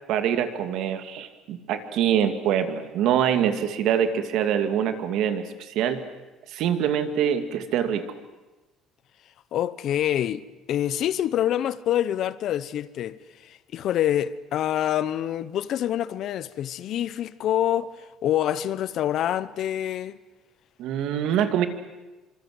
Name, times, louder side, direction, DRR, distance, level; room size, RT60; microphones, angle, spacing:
voice 1, 0.1-6.0 6.5-8.0 20.8-21.7, right 9 dB, 65° right, 2.4 m, -24 dB
voice 2, 9.5-20.2, left 11 dB, 50° left, 0.9 m, -26 dB
27.0 x 25.5 x 7.8 m
cardioid pair, 160°, 0 cm